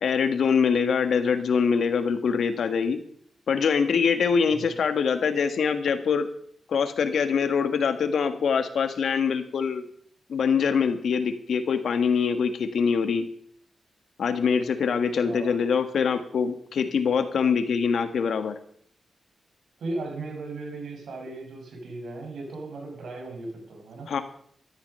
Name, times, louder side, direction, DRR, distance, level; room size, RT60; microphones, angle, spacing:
voice 1, 0.0-3.0 3.5-6.3 6.7-9.9 10.3-13.2 14.2-18.6 24.1-24.2, left 6 dB, 75° left, 9 dB, 1.6 m, -24 dB
voice 2, 15.2-15.6 19.8-24.1, right 2 dB, 75° right, 1 dB, 5.6 m, -36 dB
13.5 x 13.0 x 5.5 m, 0.63 s
cardioid pair, 75°, 0 cm